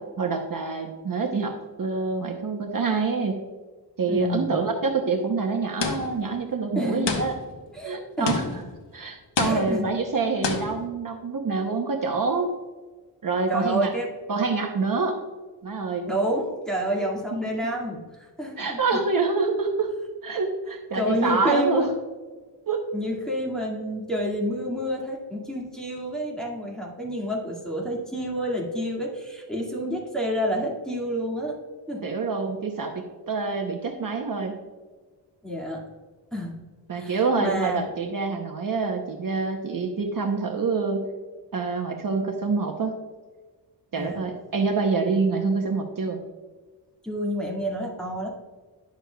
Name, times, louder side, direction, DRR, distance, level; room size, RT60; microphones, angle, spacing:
voice 1, 0.2-3.4 4.0-7.3 7.8-8.5 8.9-12.5 13.2-13.9 14.3-15.2 15.6-16.0 18.6-19.9 20.2-21.9 22.7-22.8 32.0-34.6 36.9-41.1 41.5-43.0 43.9-46.2, right 4 dB, 50° right, 3 dB, 0.8 m, -26 dB
voice 2, 4.1-4.6 6.8-7.2 7.7-8.6 9.4-9.9 13.5-14.1 16.1-19.0 21.0-21.9 22.9-31.6 31.9-32.0 35.4-35.8 36.3-36.6 36.9-37.8 44.0-44.2 47.0-48.3, equal, ahead, -3 dB, 2.0 m, -29 dB
sound 1, 5.8-6.3 7.1-7.6 8.3-8.8 9.4-9.9 10.4-10.9, left 5 dB, 80° left, 1.1 m, -28 dB
10.5 x 6.8 x 2.3 m, 1.4 s
wide cardioid pair, 110°, 42 cm